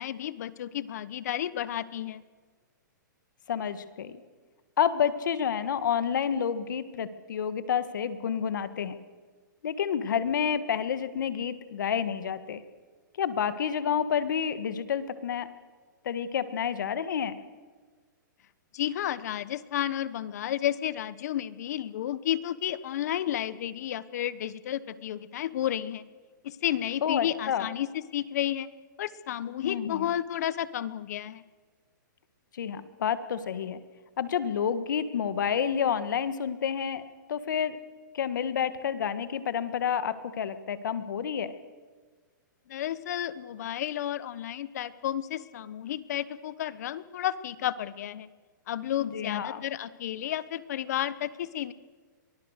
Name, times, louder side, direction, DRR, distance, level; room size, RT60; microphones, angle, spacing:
voice 1, 0.0-2.2 18.7-26.0 26.4-27.9 28.1-28.7 29.0-31.4 42.7-48.3 48.7-51.7, left 11 dB, 55° left, 17 dB, 1.0 m, -32 dB
voice 2, 3.5-4.2 4.8-9.0 9.6-12.6 13.2-15.5 16.0-17.4 27.0-27.7 29.6-30.1 32.5-33.8 34.2-37.0 37.3-37.8 38.1-41.5 49.0-49.6, left 8 dB, 70° left, 12 dB, 1.7 m, -29 dB
23.0 x 20.5 x 6.6 m, 1.5 s
hypercardioid pair, 160°, 11 cm